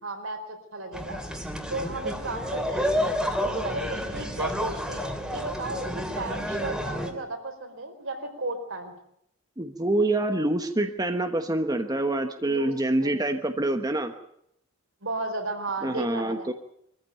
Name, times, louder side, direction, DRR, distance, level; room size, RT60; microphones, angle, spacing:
voice 1, 0.0-1.2 1.7-2.9 3.4-8.9 12.4-12.7 13.0-13.1 15.0-16.5, right 2 dB, 70° right, 5 dB, 4.5 m, -34 dB
sound 1, 0.9-7.1, equal, 5° right, 2.9 m, -30 dB
voice 2, 9.6-14.1 15.8-16.5, right 2 dB, 20° right, 6 dB, 1.1 m, -26 dB
23.5 x 15.0 x 9.2 m, 0.74 s
head